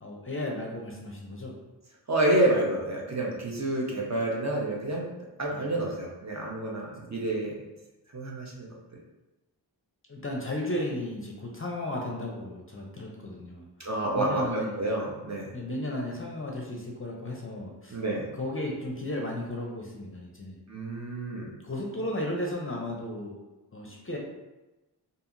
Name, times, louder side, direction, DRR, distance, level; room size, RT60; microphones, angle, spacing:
voice 1, 0.0-1.6 5.5-5.6 10.1-13.6 14.1-14.7 15.5-18.0 18.3-20.6 21.6-23.4 23.7-24.2, left 1 dB, 30° left, -1 dB, 0.5 m, -34 dB
voice 2, 2.1-5.1 5.4-7.6 8.1-8.7 13.8-15.5 17.9-18.3 20.7-21.5, right 1 dB, 40° right, -2 dB, 0.7 m, -28 dB
2.7 x 2.7 x 2.5 m, 1.1 s
cardioid pair, 50°, 44 cm